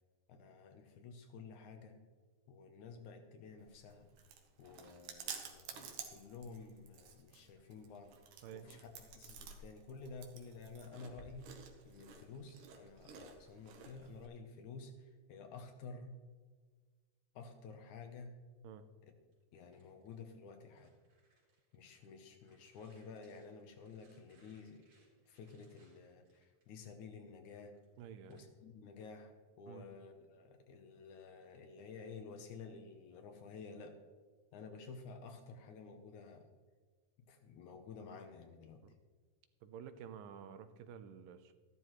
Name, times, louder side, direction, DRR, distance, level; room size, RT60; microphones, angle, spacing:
voice 1, 0.3-2.0 2.5-4.1 4.6-8.2 8.5-11.5 11.8-16.2 17.4-18.3 19.0-19.1 19.5-20.9 21.7-24.8 25.3-27.8 28.3-34.0 34.5-36.5 37.3-38.8, left 4 dB, 70° left, 6 dB, 2.1 m, -52 dB
Chewing mastication, 3.6-14.3, right 6 dB, 70° right, 2.5 m, -52 dB
sound 1, 19.3-22.1 22.4-26.9 27.4-28.4, right 3 dB, 55° right, 4.3 m, -74 dB
voice 2, 28.0-28.5 29.7-29.9 38.8-38.9 39.6-41.5, right 8 dB, 90° right, 10 dB, 2.4 m, -51 dB
13.5 x 12.0 x 3.1 m, 1.5 s
omnidirectional pair, 4.0 m